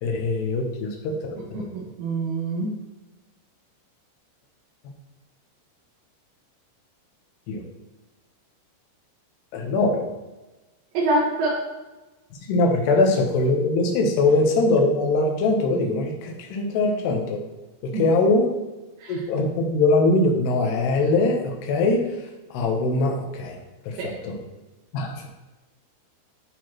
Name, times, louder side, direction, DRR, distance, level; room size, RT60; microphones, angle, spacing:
voice 1, 0.0-1.6 7.5-7.6 9.5-10.1 12.5-17.4 17.8-18.6 19.1-22.0 22.5-23.6 23.9-24.4 24.9-25.3, left 2 dB, 75° left, 1 dB, 2.5 m, -22 dB
voice 2, 1.5-2.7 11.0-11.6 17.9-18.1 19.0-19.2 24.0-24.1, right 2 dB, 75° right, -6 dB, 3.8 m, -25 dB
11.0 x 4.6 x 2.9 m, 1.1 s
omnidirectional pair, 5.7 m